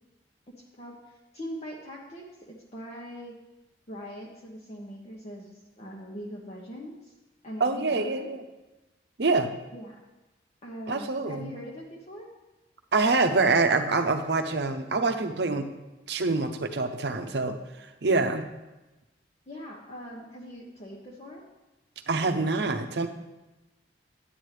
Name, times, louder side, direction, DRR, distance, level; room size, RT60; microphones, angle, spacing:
voice 1, 0.5-1.0 1.3-3.4 3.9-7.1 7.4-8.4 9.7-10.0 10.6-12.3 19.5-21.4, equal, 35° left, -3 dB, 1.0 m, -42 dB
voice 2, 7.6-8.4 9.2-9.5 10.9-11.5 12.9-15.6 16.1-17.6 18.0-18.5 22.1-23.1, right 3 dB, 65° right, 6 dB, 0.7 m, -25 dB
9.7 x 9.5 x 3.3 m, 1.0 s
head